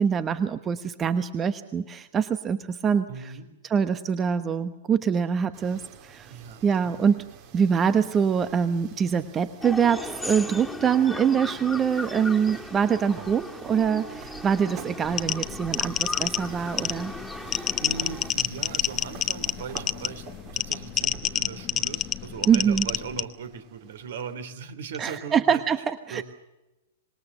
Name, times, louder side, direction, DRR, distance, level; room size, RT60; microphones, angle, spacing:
voice 1, 0.0-3.1 3.7-6.3 6.6-7.2 7.5-17.1 22.5-22.9 25.0-26.2, right 7 dB, 20° right, 12 dB, 1.0 m, -24 dB
voice 2, 3.1-3.5 6.3-7.0 17.5-20.2 20.5-25.8 26.1-26.2, right 6 dB, 60° right, 10 dB, 3.0 m, -39 dB
sound 1, 5.5-24.3, right 7 dB, 40° right, 2.9 m, -48 dB
sound 2, 9.6-18.3, left 2 dB, 5° left, 2.4 m, -38 dB
sound 3, 15.1-23.2, left 10 dB, 25° left, 1.1 m, -28 dB
26.0 x 21.5 x 6.8 m, 1.0 s
figure-of-eight pair, 105°, 0 cm